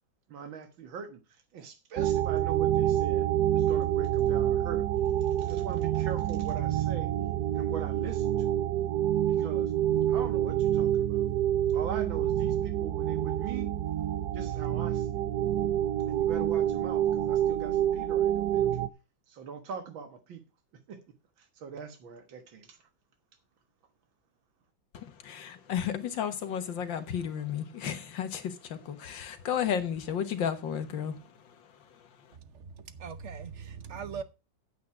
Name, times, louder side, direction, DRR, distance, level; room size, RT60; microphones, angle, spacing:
voice 1, 0.3-1.2 1.5-3.3 3.5-4.9 5.4-7.1 7.5-8.5 9.3-9.7 10.1-11.3 11.7-13.7 14.3-15.2 16.0-18.8 19.3-20.4 20.9-21.0 21.6-22.8, right 6 dB, 90° right, 2.1 m, -41 dB
sound 1, 2.0-18.9, right 11 dB, 70° right, 1.1 m, -27 dB
voice 2, 24.9-31.2, left 8 dB, 75° left, 2.0 m, -33 dB
voice 3, 32.3-34.2, right 6 dB, 50° right, 1.0 m, -41 dB
9.3 x 8.5 x 4.8 m
omnidirectional pair, 2.1 m